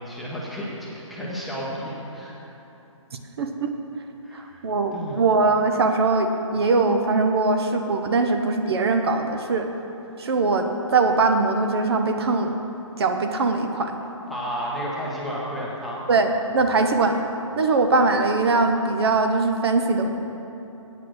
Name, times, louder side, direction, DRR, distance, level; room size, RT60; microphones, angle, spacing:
voice 1, 0.0-2.4 4.2-4.6 4.9-5.2 14.3-16.0, equal, ahead, -6 dB, 0.9 m, -32 dB
voice 2, 3.4-3.7 4.3-9.7 10.2-12.5 13.0-14.0 16.1-17.2 17.6-20.2, right 3 dB, 50° right, 5 dB, 0.8 m, -21 dB
8.7 x 8.4 x 6.3 m, 3.0 s
hypercardioid pair, 160°, 17 cm